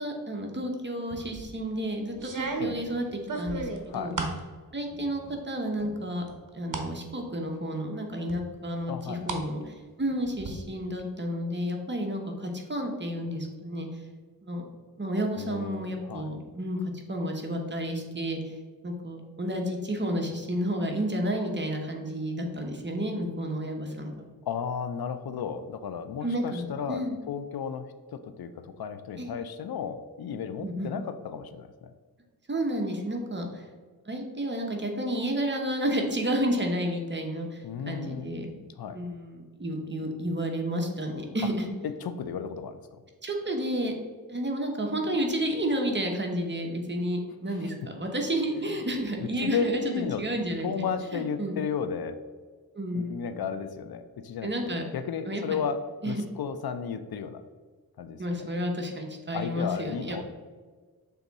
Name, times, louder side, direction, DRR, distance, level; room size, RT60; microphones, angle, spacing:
voice 1, 0.0-3.0 3.4-4.1 4.7-6.2 6.5-13.9 14.4-14.6 15.0-18.5 18.8-24.3 26.2-27.2 29.2-29.3 30.6-30.9 32.5-33.6 34.1-38.5 38.9-41.7 43.2-43.9 44.3-50.9 51.1-51.6 52.7-53.3 54.4-54.9 55.3-55.4 56.0-56.2 58.2-60.2, equal, 30° right, 2 dB, 1.1 m, -31 dB
sound 1, 1.1-1.5 2.2-4.4 4.9-5.4 5.8-6.9 7.3-7.4 8.3-9.4 9.8-10.5, right 4 dB, 55° right, 1.0 m, -35 dB
voice 2, 8.9-9.4 15.4-16.3 24.4-27.9 28.1-31.9 37.6-38.3 38.8-39.0 41.8-43.0 48.6-48.8 49.2-50.2 50.6-52.2 52.9-57.4 58.0-58.5 59.3-60.2, left 6 dB, 80° left, 10 dB, 0.6 m, -34 dB
6.8 x 3.5 x 4.1 m, 1.5 s
wide cardioid pair, 80°, 36 cm